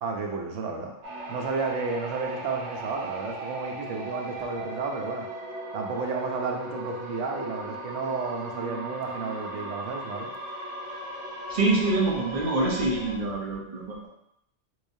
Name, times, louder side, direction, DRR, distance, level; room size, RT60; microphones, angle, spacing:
voice 1, 0.0-0.9 1.3-5.3 5.7-10.3, right 4 dB, 85° right, 2 dB, 0.9 m, -32 dB
sound 1, 1.0-13.2, right 1 dB, 70° right, 1.1 m, -37 dB
voice 2, 11.5-14.1, right 2 dB, 40° right, -3 dB, 0.8 m, -25 dB
3.8 x 3.2 x 2.6 m, 0.77 s
omnidirectional pair, 1.2 m